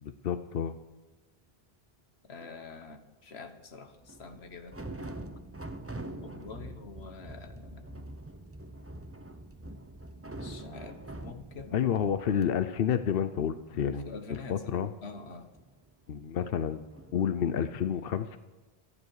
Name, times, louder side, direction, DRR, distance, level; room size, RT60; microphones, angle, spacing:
voice 1, 0.0-0.7 11.7-14.9 16.1-16.8 17.1-18.4, left 8 dB, 65° left, 11 dB, 0.9 m, -30 dB
voice 2, 2.3-4.8 6.1-8.1 10.3-11.9 13.9-15.5, left 4 dB, 85° left, 8 dB, 1.6 m, -46 dB
sound 1, 2.4-2.6 3.9-12.5 12.8-12.9 13.1-16.4 16.9-17.2, right 1 dB, 15° right, 0.9 m, -45 dB
26.5 x 9.9 x 4.8 m, 1.2 s
omnidirectional pair, 1.1 m